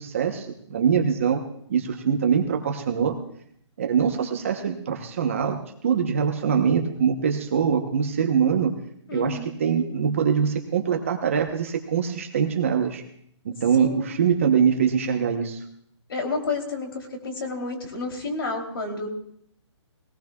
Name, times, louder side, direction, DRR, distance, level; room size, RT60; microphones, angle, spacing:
voice 1, 0.0-1.4 1.7-3.2 3.8-8.7 9.1-13.0 13.4-15.6, right 7 dB, 25° right, 4 dB, 0.9 m, -23 dB
voice 2, 9.1-9.5 13.7-14.1 16.1-19.1, left 3 dB, 50° left, 3 dB, 3.1 m, -30 dB
21.5 x 18.0 x 2.3 m, 0.67 s
hypercardioid pair, 180°, 16 cm